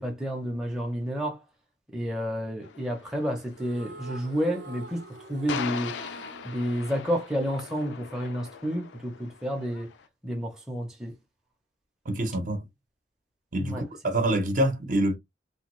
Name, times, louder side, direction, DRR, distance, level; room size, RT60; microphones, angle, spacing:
voice 1, 0.0-1.4 1.9-5.0 5.3-6.0 6.4-9.9 10.2-11.1 13.6-13.8, equal, 5° right, 0.6 m, -30 dB
sound 1, 2.6-10.1, left 7 dB, 75° left, 0.4 m, -40 dB
sound 2, 3.5-7.9, right 2 dB, 75° right, 0.7 m, -46 dB
voice 2, 12.1-12.7 13.5-15.2, right 1 dB, 45° right, 0.8 m, -26 dB
3.4 x 2.3 x 3.0 m
head